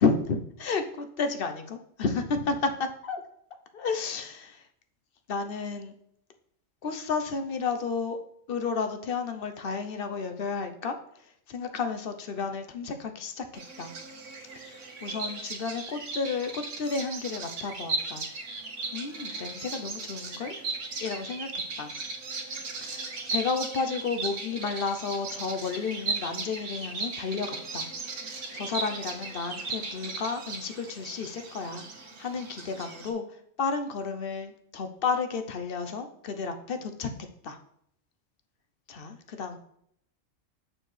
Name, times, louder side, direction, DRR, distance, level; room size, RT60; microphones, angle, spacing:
voice 1, 0.0-2.6 3.1-3.2 3.7-4.5 5.3-5.9 6.8-8.2 8.5-10.9 11.5-13.4 13.8-13.9 15.0-18.2 18.9-20.5 21.0-21.5 21.8-21.9 22.8-27.5 27.7-27.9 28.3-31.9 32.2-33.2 33.6-37.1 37.4-37.6 38.9-39.6, left 5 dB, 55° left, 7 dB, 0.7 m, -32 dB
Bird vocalization bird call bird song, 13.5-33.1, right 3 dB, 65° right, 1.4 m, -37 dB
6.7 x 6.2 x 3.2 m, 0.71 s
omnidirectional pair, 1.4 m